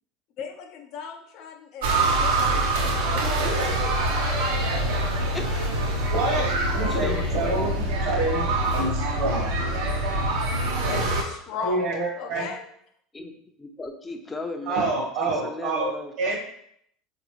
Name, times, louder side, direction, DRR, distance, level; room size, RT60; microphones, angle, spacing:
voice 1, 0.4-4.5 5.1-6.0 6.6-7.7 10.9-11.9 12.2-12.7, left 6 dB, 60° left, 4 dB, 0.6 m, -38 dB
sound 1, 1.8-11.2, right 1 dB, 90° right, 0.7 m, -25 dB
voice 2, 3.1-4.8 5.3-5.6 6.9-7.6 8.6-8.7 13.1-13.3 13.6-15.0 15.2-16.1, left 3 dB, 15° left, 5 dB, 0.5 m, -37 dB
voice 3, 6.0-9.6 11.6-12.5 14.7-16.3, right 2 dB, 65° right, -2 dB, 0.9 m, -27 dB
4.1 x 2.5 x 3.0 m, 0.69 s
supercardioid pair, 110°, 0 cm